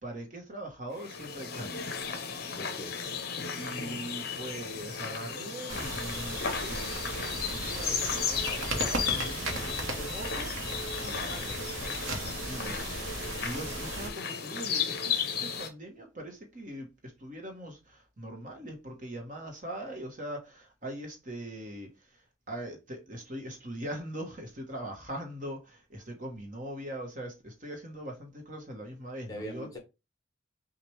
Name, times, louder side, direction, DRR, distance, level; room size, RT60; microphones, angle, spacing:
voice 1, 0.0-1.9 3.5-10.7 11.0-11.7 12.1-29.7, right 1 dB, 40° right, 1.1 m, -41 dB
sound 1, 1.0-15.7, left 6 dB, 50° left, 0.7 m, -35 dB
voice 2, 2.5-3.2 29.3-29.8, equal, 15° left, 1.2 m, -42 dB
sound 2, 5.7-14.1, right 2 dB, 75° right, 1.2 m, -36 dB
6.1 x 2.5 x 3.2 m
head